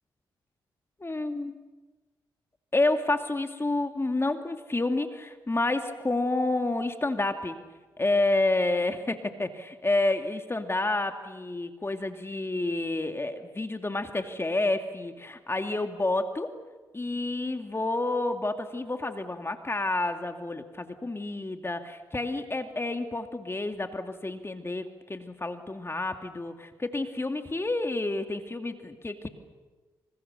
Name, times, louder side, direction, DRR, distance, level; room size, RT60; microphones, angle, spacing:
voice 1, 1.0-1.6 2.7-7.6 8.0-16.5 16.9-29.3, left 2 dB, 25° left, 7 dB, 2.3 m, -29 dB
26.5 x 26.5 x 6.8 m, 1.3 s
supercardioid pair, 45°, 9 cm